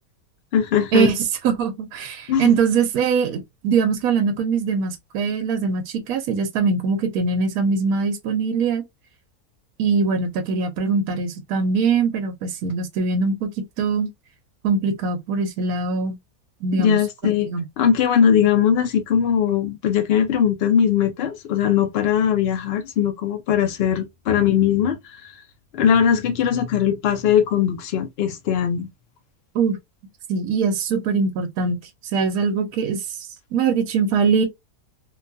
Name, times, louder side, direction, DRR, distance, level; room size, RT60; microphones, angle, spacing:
voice 1, 0.5-1.1 2.3-2.5 16.8-17.5 17.8-25.2 25.7-28.9, left 8 dB, 60° left, 0.6 m, -20 dB
voice 2, 1.4-8.8 9.8-13.5 13.8-14.1 14.6-16.2 16.6-17.0 17.5-17.6 29.5-29.8 30.3-31.8 32.1-33.2 33.5-34.4, right 5 dB, 75° right, 1.1 m, -22 dB
2.8 x 2.2 x 2.5 m
omnidirectional pair, 1.6 m